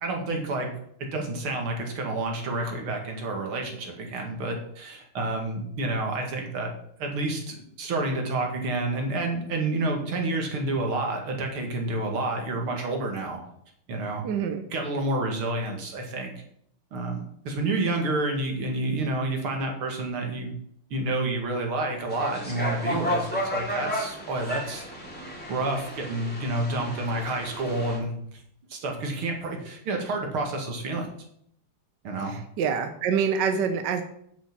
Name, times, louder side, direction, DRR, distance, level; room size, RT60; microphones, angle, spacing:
voice 1, 0.0-0.7 1.1-6.7 7.0-13.4 13.9-14.2 14.7-16.3 16.9-20.5 20.9-24.9 25.5-28.4 28.7-31.1 32.0-32.3, right 2 dB, 75° right, 2 dB, 2.8 m, -29 dB
voice 2, 14.2-14.6 32.3-34.0, right 6 dB, 60° right, 8 dB, 1.4 m, -26 dB
sound 1, 22.1-28.0, equal, 5° left, 3.1 m, -33 dB
7.5 x 7.4 x 7.4 m, 0.70 s
omnidirectional pair, 2.3 m